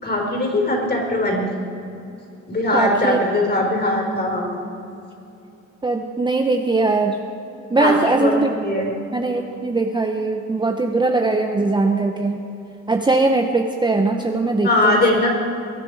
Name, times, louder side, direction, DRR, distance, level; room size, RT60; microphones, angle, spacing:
voice 1, 0.0-1.5 2.5-4.5 7.8-8.9 14.6-15.3, left 1 dB, 35° left, 1 dB, 4.3 m, -20 dB
voice 2, 2.7-3.2 5.8-7.2 7.7-8.5 9.1-12.4 12.9-15.0, right 3 dB, 15° right, 3 dB, 0.8 m, -20 dB
23.0 x 9.8 x 4.8 m, 2.8 s
cardioid pair, 90°, 30 cm